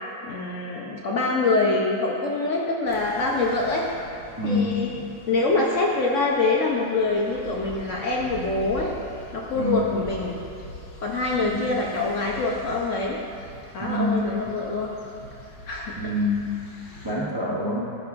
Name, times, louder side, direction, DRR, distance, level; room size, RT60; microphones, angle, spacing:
voice 1, 0.2-3.9 4.4-4.9 5.3-8.9 9.3-10.4 11.0-13.2 13.7-14.9 15.7-16.1, left 3 dB, 60° left, -2 dB, 0.8 m, -25 dB
sound 1, 2.9-17.1, left 1 dB, 85° left, 1.9 m, -44 dB
voice 2, 4.4-5.1 9.6-9.9 11.3-11.8 13.8-14.2 16.0-16.4 17.0-17.8, left 2 dB, 30° right, -6 dB, 0.4 m, -26 dB
13.0 x 6.1 x 2.5 m, 2.9 s
omnidirectional pair, 1.9 m